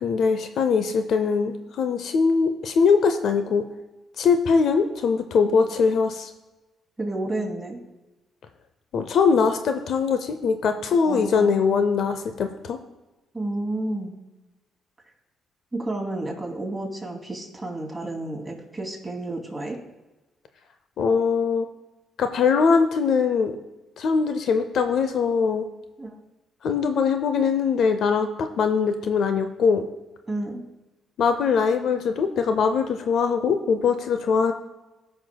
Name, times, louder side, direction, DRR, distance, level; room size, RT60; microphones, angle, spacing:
voice 1, 0.0-3.6 4.2-6.3 8.9-12.8 21.0-21.7 22.2-23.5 24.0-25.6 26.6-29.8 31.2-34.5, left 5 dB, 65° left, 8 dB, 0.6 m, -22 dB
voice 2, 7.0-7.8 11.0-11.8 13.3-14.1 15.7-19.8 26.0-26.2 30.3-30.6, right 2 dB, 10° right, -2 dB, 2.7 m, -31 dB
17.5 x 6.0 x 2.3 m, 1.1 s
cardioid pair, 90°, 0 cm